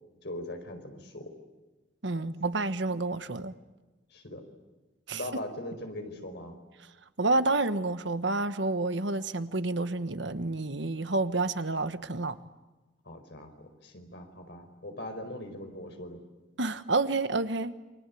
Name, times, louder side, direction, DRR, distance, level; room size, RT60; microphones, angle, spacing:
voice 1, 0.2-1.3 2.2-2.3 4.1-4.4 5.1-6.6 13.0-16.2, left 1 dB, 60° left, 5 dB, 4.8 m, -40 dB
voice 2, 2.0-3.5 5.1-5.2 7.2-12.3 16.6-17.7, right 2 dB, 75° right, 12 dB, 1.3 m, -29 dB
28.5 x 24.5 x 8.6 m, 1.1 s
head